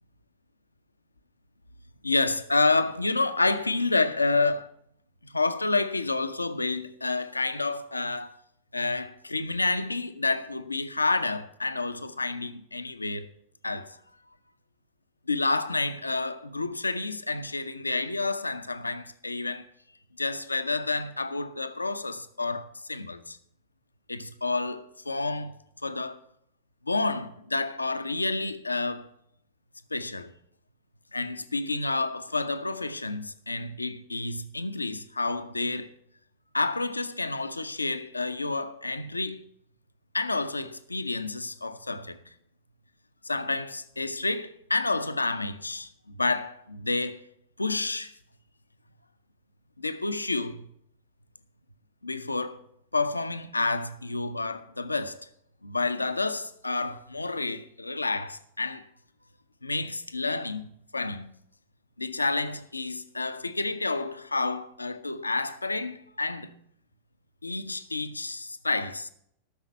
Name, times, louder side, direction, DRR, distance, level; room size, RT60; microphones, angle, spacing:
voice 1, 2.0-4.7 5.2-8.3 8.7-13.3 13.6-14.0 15.3-19.7 20.2-23.4 24.1-25.5 25.8-26.2 26.8-29.1 29.9-30.3 31.1-35.9 36.5-39.4 40.1-42.2 43.2-47.2 47.6-48.1 49.8-50.7 52.0-52.6 52.9-55.3 55.6-58.8 59.6-61.3 62.0-66.5 67.4-69.1, left 3 dB, 80° left, 0.7 m, -29 dB
13.0 x 6.5 x 8.1 m
figure-of-eight pair, 90°, 0 cm